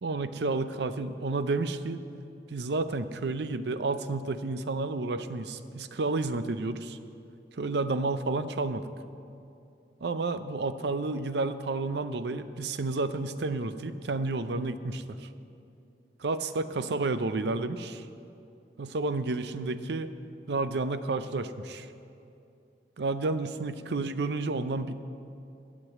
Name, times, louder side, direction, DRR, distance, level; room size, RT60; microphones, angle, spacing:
voice 1, 0.0-2.0 2.5-7.0 7.6-8.8 10.0-15.3 16.2-18.0 18.8-20.1 20.5-21.9 23.0-24.9, right 3 dB, 75° right, 12 dB, 0.5 m, -31 dB
12.0 x 7.5 x 8.0 m, 2.6 s
head